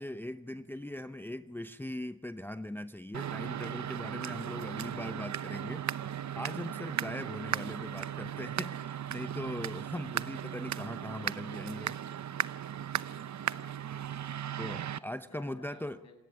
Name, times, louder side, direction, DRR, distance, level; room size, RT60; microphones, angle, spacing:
voice 1, 0.0-5.8 6.3-12.0 14.6-16.0, left 1 dB, 5° left, 11 dB, 0.7 m, -40 dB
sound 1, 3.1-15.0, right 9 dB, 55° right, 0.8 m, -37 dB
voice 2, 13.4-14.8 15.3-16.2, left 3 dB, 55° left, 4 dB, 7.4 m, -58 dB
28.0 x 17.5 x 8.8 m, 1.0 s
cardioid pair, 90°, 33 cm